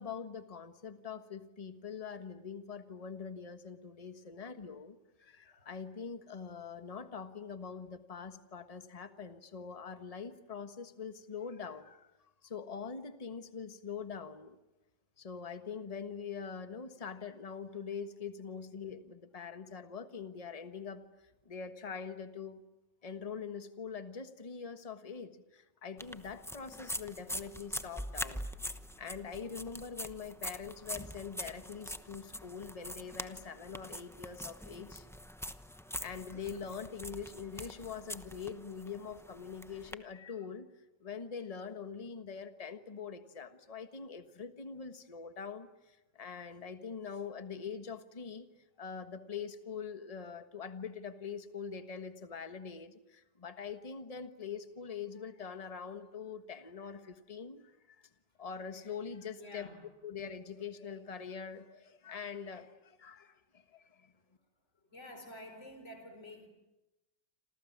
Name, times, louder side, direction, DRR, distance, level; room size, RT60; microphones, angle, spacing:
voice 1, 0.0-14.6 15.2-21.0 21.4-22.6 23.0-28.5 29.0-35.1 35.7-40.7 41.0-48.5 48.8-58.1 58.4-59.7 60.0-64.1, left 6 dB, 20° left, 1.3 m, -44 dB
sound 1, 26.0-39.9, equal, 5° left, 0.4 m, -44 dB
voice 2, 59.4-59.8 64.9-66.5, left 1 dB, 40° left, 5.0 m, -50 dB
28.0 x 27.5 x 7.4 m
omnidirectional pair, 1.9 m